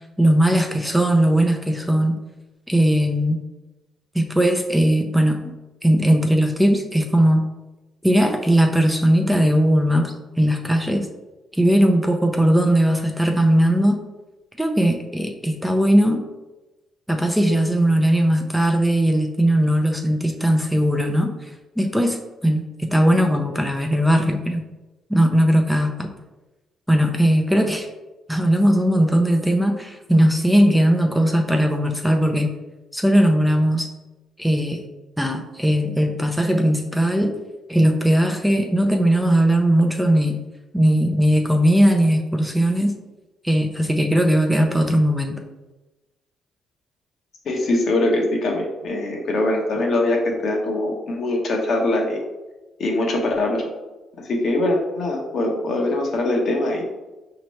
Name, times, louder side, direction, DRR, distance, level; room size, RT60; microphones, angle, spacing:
voice 1, 0.2-2.2 2.7-3.4 4.1-5.4 5.8-7.4 8.0-11.1 11.5-14.0 14.6-16.2 17.1-21.5 21.8-24.6 25.1-26.1 26.9-27.9 28.3-32.5 32.9-33.9 34.4-34.8 35.2-37.4 37.7-40.4 40.7-42.9 43.4-45.4, equal, ahead, 3 dB, 0.5 m, -18 dB
voice 2, 47.4-52.2 52.8-53.7 54.2-56.8, left 2 dB, 60° left, 0 dB, 1.0 m, -22 dB
5.1 x 2.9 x 3.1 m, 1.1 s
cardioid pair, 90°, 0 cm